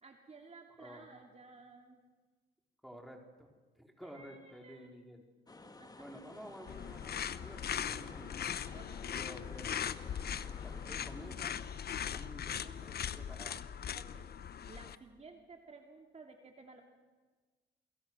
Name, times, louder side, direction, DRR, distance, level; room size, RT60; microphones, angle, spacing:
voice 1, 0.0-2.0 4.0-4.9 5.6-6.0 8.7-9.1 13.9-14.3 14.7-16.8, right 4 dB, 35° right, 2 dB, 2.8 m, -55 dB
voice 2, 2.8-5.2 6.0-8.3 9.0-9.8 10.6-11.6 12.1-13.6, equal, ahead, 1 dB, 4.6 m, -51 dB
sound 1, 5.5-12.1, left 2 dB, 20° left, 2.0 m, -54 dB
sound 2, 6.7-14.9, left 8 dB, 50° left, 1.0 m, -40 dB
29.0 x 22.5 x 6.3 m, 1.4 s
cardioid pair, 90°, 20 cm